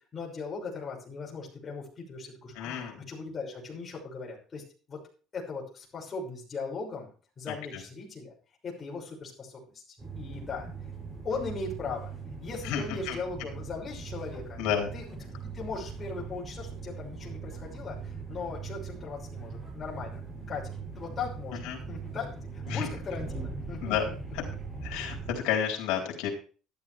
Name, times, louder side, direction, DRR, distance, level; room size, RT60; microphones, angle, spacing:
voice 1, 0.1-4.6 4.9-5.0 5.3-7.1 7.4-8.3 8.6-10.7 11.2-12.1 12.4-14.6 14.9-15.1 15.4-24.2, left 4 dB, 25° left, -2 dB, 5.9 m, -39 dB
voice 2, 2.6-2.9 7.5-7.6 12.6-13.2 14.6-14.9 21.7-21.8 22.7-22.9 23.8-24.0 24.3-24.4 24.8-26.3, left 9 dB, 90° left, 0 dB, 3.8 m, -30 dB
sound 1, 10.0-25.3, right 4 dB, 15° right, 7.5 m, -40 dB
13.0 x 12.0 x 3.4 m, 0.38 s
cardioid pair, 165°, 0 cm